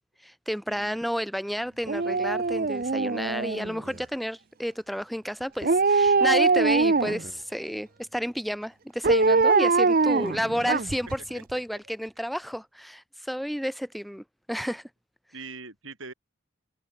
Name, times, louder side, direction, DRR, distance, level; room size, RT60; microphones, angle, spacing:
voice 1, 0.2-14.8, equal, ahead, 1.6 m, -31 dB
Dog, 1.9-3.9 5.6-7.3 9.0-11.1 11.5-11.6, right 4 dB, 45° right, 0.7 m, -23 dB
voice 2, 10.0-10.3 11.3-11.8 15.3-16.1, right 3 dB, 75° right, 7.1 m, -43 dB
open air
head